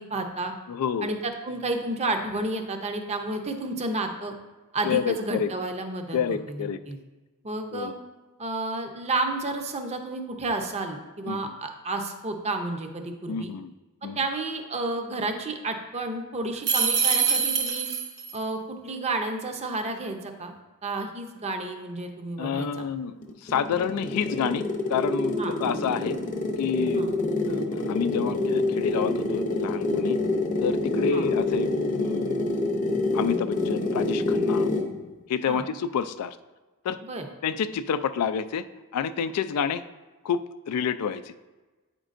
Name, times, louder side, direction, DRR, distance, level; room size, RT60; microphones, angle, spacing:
voice 1, 0.0-0.5 1.0-4.3 4.7-7.0 7.4-7.9 8.4-13.5 14.2-17.9 18.3-20.5 20.8-22.8 25.4-25.5 26.9-27.1 31.1-31.3 35.5-35.6 37.1-37.3, right 2 dB, 30° right, 5 dB, 0.6 m, -31 dB
voice 2, 0.7-1.1 4.8-5.5 6.1-6.8 7.7-7.9 11.3-11.4 13.3-13.7 14.0-14.2 22.4-24.6 24.9-26.2 26.6-27.0 27.5-30.2 30.6-31.7 31.9-32.4 33.1-34.7 35.3-36.4 36.8-37.0 37.4-38.6 38.9-39.8 40.2-41.3, left 7 dB, 90° left, 13 dB, 0.3 m, -29 dB
sound 1, 16.6-18.3, right 6 dB, 50° right, 0.9 m, -24 dB
sound 2, 23.2-35.0, left 2 dB, 35° left, 0.7 m, -27 dB
8.9 x 5.2 x 2.5 m, 1.2 s
head